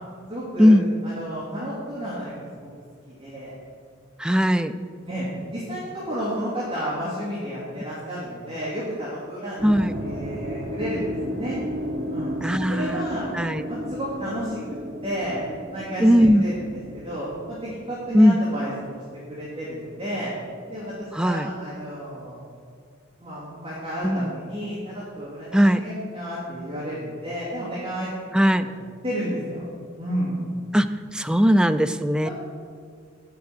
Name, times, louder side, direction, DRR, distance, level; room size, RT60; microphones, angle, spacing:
voice 1, 0.3-0.7 1.0-2.7 3.1-3.5 5.0-9.7 10.0-11.6 12.1-12.4 12.7-13.3 13.7-15.4 15.7-19.0 19.3-20.3 20.7-22.4 23.2-28.1 28.5-28.8 29.0-29.6 30.0-30.5 32.2-32.3, equal, 30° right, -10 dB, 2.5 m, -32 dB
voice 2, 4.2-4.7 9.6-9.9 12.4-13.0 13.3-13.6 16.0-16.4 18.1-18.4 21.2-21.5 24.0-24.3 25.5-25.8 28.3-28.7 30.7-32.3, equal, 5° right, 9 dB, 0.3 m, -18 dB
sound 1, 9.6-19.7, equal, 45° right, 2.6 m, -34 dB
9.6 x 6.1 x 7.5 m, 2.1 s
head